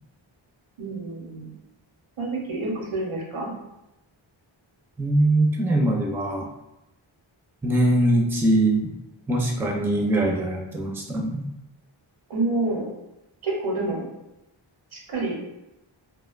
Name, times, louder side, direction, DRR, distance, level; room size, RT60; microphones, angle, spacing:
voice 1, 0.8-1.5 2.2-3.5 12.3-12.9 13.4-14.0 14.9-15.3, right 2 dB, 85° right, -2 dB, 0.8 m, -28 dB
voice 2, 5.0-6.5 7.6-8.9 9.3-11.5, right 1 dB, 5° right, 0 dB, 0.4 m, -22 dB
2.4 x 2.2 x 2.3 m, 0.92 s
wide cardioid pair, 50°, 47 cm